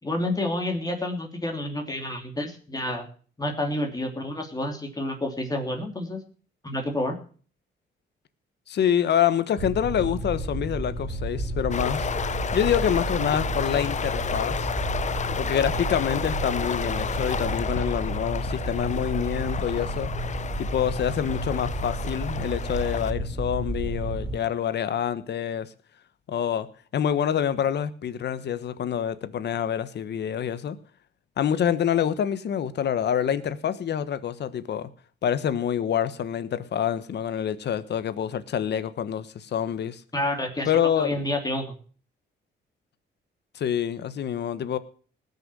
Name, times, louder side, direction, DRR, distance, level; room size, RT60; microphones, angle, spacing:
voice 1, 0.0-3.0 3.4-6.2 6.6-7.1 40.1-40.7 41.0-41.8, left 1 dB, 20° left, 3 dB, 2.9 m, -29 dB
voice 2, 8.7-14.7 15.4-20.1 20.6-25.7 26.3-26.7 26.9-30.8 31.4-34.9 35.2-40.0 40.6-41.2 43.5-44.8, left 9 dB, 60° left, 13 dB, 1.3 m, -26 dB
sound 1, 9.6-24.4, right 2 dB, 30° right, 3.6 m, -31 dB
sound 2, 11.7-23.1, left 7 dB, 35° left, 0.7 m, -32 dB
19.5 x 6.8 x 6.3 m, 0.42 s
cardioid pair, 90°, 20 cm